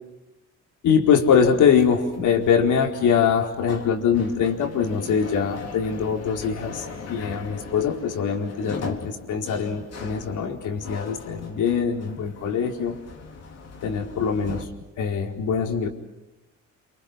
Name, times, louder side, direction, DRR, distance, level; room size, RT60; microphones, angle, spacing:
voice 1, 0.8-13.0 13.8-14.7 15.0-15.9, left 7 dB, 80° left, 2 dB, 4.6 m, -23 dB
sound 1, 1.1-14.7, left 4 dB, 55° left, 4.0 m, -39 dB
28.5 x 27.5 x 6.1 m, 0.98 s
cardioid pair, 90°, 30 cm